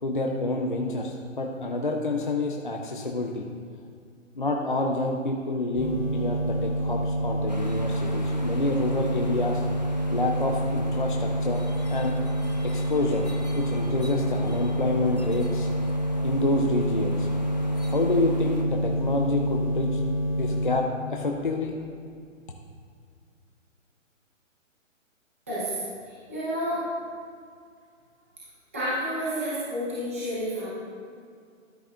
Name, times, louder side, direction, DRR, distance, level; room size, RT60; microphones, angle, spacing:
voice 1, 0.0-3.5 4.3-9.6 10.1-11.6 11.9-12.2 12.6-13.2 13.6-15.7 16.2-17.3 17.9-20.0 20.4-21.7, left 2 dB, 40° left, 1 dB, 0.5 m, -28 dB
sound 1, 5.7-20.7, equal, 15° left, 1.5 m, -27 dB
sound 2, 7.5-18.6, equal, 35° right, 0.4 m, -44 dB
voice 2, 25.5-26.9 28.7-30.7, equal, 10° right, -12 dB, 0.9 m, -30 dB
12.5 x 8.0 x 2.4 m, 2.2 s
hypercardioid pair, 180°, 39 cm